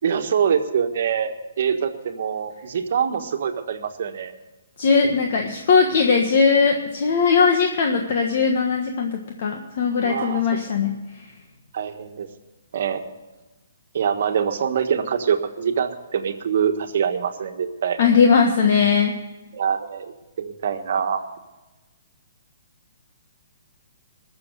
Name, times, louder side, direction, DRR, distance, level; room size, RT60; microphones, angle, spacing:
voice 1, 0.0-4.3 10.0-10.4 11.7-12.3 12.7-13.0 13.9-18.0 19.5-20.1 20.4-21.2, right 7 dB, 55° right, 7 dB, 1.4 m, -24 dB
voice 2, 4.8-10.9 18.0-19.1, left 5 dB, 45° left, 3 dB, 1.4 m, -19 dB
21.0 x 7.0 x 6.7 m, 1.1 s
hypercardioid pair, 170°, 0 cm